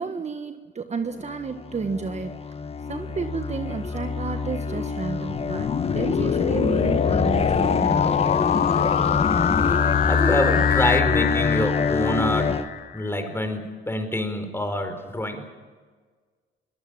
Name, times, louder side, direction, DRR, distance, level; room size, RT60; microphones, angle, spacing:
voice 1, 0.0-2.3 2.9-8.2, right 5 dB, 35° right, 7 dB, 1.5 m, -31 dB
sound 1, 1.2-12.7, left 4 dB, 30° left, 1.6 m, -26 dB
sound 2, 5.3-13.1, left 9 dB, 45° left, 0.6 m, -25 dB
voice 2, 10.1-12.6 12.9-15.4, left 1 dB, 10° left, 7 dB, 4.7 m, -26 dB
23.0 x 19.0 x 8.9 m, 1.5 s
cardioid pair, 90°, 20 cm